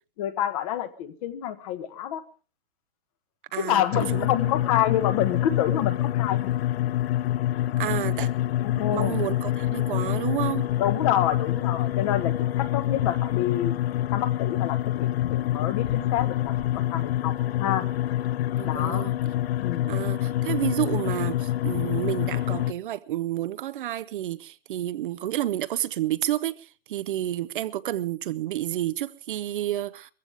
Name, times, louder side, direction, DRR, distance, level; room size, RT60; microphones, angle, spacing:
voice 1, 0.2-2.2 3.6-6.6 8.6-9.2 10.8-13.7 14.1-16.6 16.9-18.2 18.6-19.1 19.6-20.0, left 11 dB, 35° left, 1.2 m, -28 dB
voice 2, 3.5-4.5 7.8-8.3 8.9-10.7 18.6-19.1 19.9-30.1, right 13 dB, 55° right, 0.7 m, -30 dB
sound 1, 3.9-22.7, left 13 dB, 75° left, 0.7 m, -26 dB
21.5 x 15.0 x 3.4 m
hypercardioid pair, 165°, 31 cm